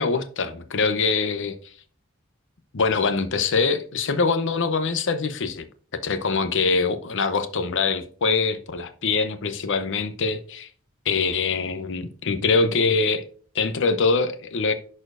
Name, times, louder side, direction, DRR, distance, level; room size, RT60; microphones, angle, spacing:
voice 1, 0.0-1.5 2.7-5.7 6.0-10.7 11.0-13.2 13.5-14.7, left 4 dB, 60° left, 0.8 m, -23 dB
11.0 x 4.3 x 2.5 m
head